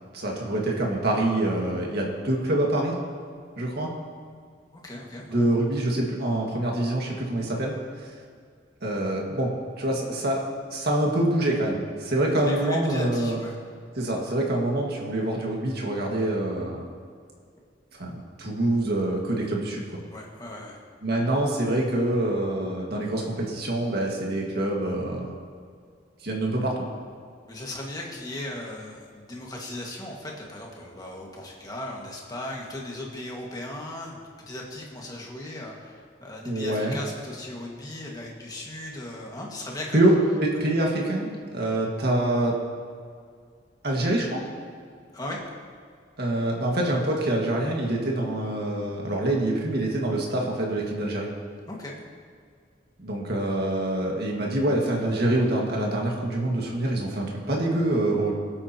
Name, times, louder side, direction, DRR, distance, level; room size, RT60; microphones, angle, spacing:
voice 1, 0.1-3.0 3.6-3.9 5.3-8.1 8.8-10.4 10.7-13.4 14.0-16.8 17.9-18.1 18.4-19.8 21.0-25.4 26.2-26.8 36.5-37.0 39.9-42.6 43.8-44.4 46.2-51.3 53.0-58.3, right 1 dB, 60° right, -1 dB, 1.9 m, -25 dB
voice 2, 4.7-5.5 12.4-13.6 20.1-20.8 27.5-40.0 45.1-45.4 51.7-51.9, left 1 dB, 20° left, -2 dB, 1.8 m, -37 dB
21.5 x 8.7 x 3.0 m, 2.1 s
head